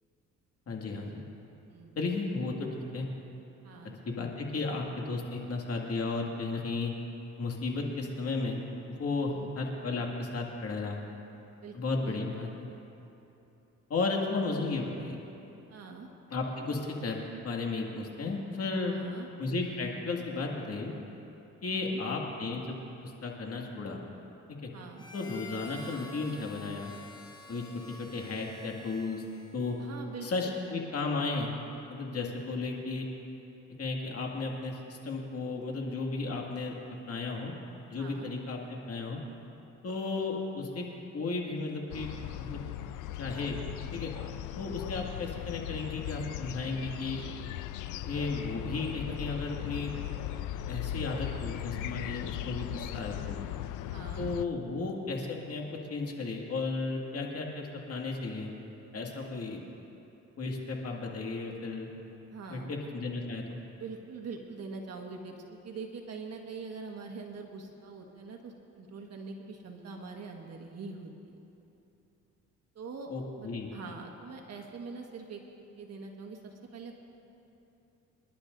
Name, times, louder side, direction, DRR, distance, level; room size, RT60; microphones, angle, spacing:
voice 1, 0.7-1.2 2.0-2.7 2.9-3.1 4.1-6.9 7.4-8.6 8.9-11.0 11.7-12.7 13.9-15.2 16.3-17.2 17.4-18.9 19.4-20.9 21.6-22.8 23.0-24.0 24.5-24.7 25.1-26.9 27.5-29.2 29.5-29.8 30.2-31.6 31.9-33.1 33.8-36.7 37.1-37.5 37.9-39.2 39.8-40.9 41.1-42.1 42.4-42.6 43.2-43.6 43.9-44.1 44.6-47.3 48.0-49.9 50.7-53.4 54.2-58.5 58.9-59.6 60.4-61.9 62.5-63.6 73.1-73.7, left 3 dB, 50° left, 0 dB, 2.2 m, -34 dB
voice 2, 3.6-3.9 9.3-9.5 11.6-11.8 12.0-12.5 15.7-16.1 18.9-19.3 21.7-22.0 24.7-25.0 29.8-30.6 38.0-38.3 53.9-54.3 62.3-62.7 63.8-71.4 72.7-77.0, right 4 dB, 55° right, 1 dB, 1.6 m, -44 dB
Harmonica, 24.9-30.0, left 2 dB, 15° left, 1.4 m, -49 dB
sound 1, 41.9-54.5, left 12 dB, 90° left, 0.5 m, -38 dB
27.5 x 11.5 x 2.7 m, 3.0 s
cardioid pair, 90°, 30 cm